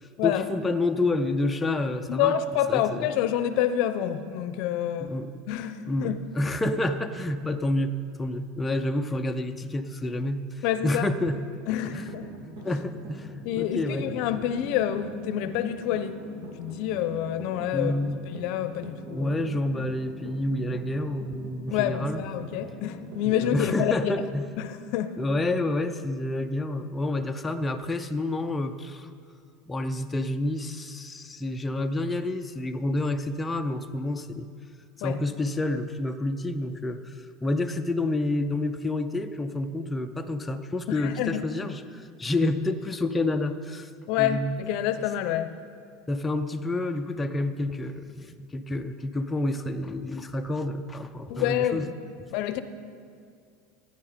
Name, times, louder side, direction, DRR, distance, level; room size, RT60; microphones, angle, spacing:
voice 1, 0.2-2.3 2.7-3.1 5.0-5.3 5.8-7.9 8.2-11.4 11.9-12.1 12.6-14.2 17.7-18.2 19.1-22.6 23.3-24.4 25.2-29.1 29.7-34.5 35.0-43.9 44.2-44.6 46.1-51.9, left 2 dB, 15° left, 5 dB, 0.6 m, -29 dB
voice 2, 2.1-5.1 5.5-6.2 10.6-11.1 11.7-12.3 13.4-17.9 18.3-19.3 21.7-24.1 24.6-25.1 35.0-35.2 40.9-41.4 44.1-45.5 51.3-51.9 52.3-52.6, left 11 dB, 60° left, 11 dB, 0.7 m, -28 dB
sound 1, 11.8-24.0, right 2 dB, 65° right, 3.2 m, -44 dB
14.5 x 9.6 x 5.1 m, 2.2 s
supercardioid pair, 125°, 0 cm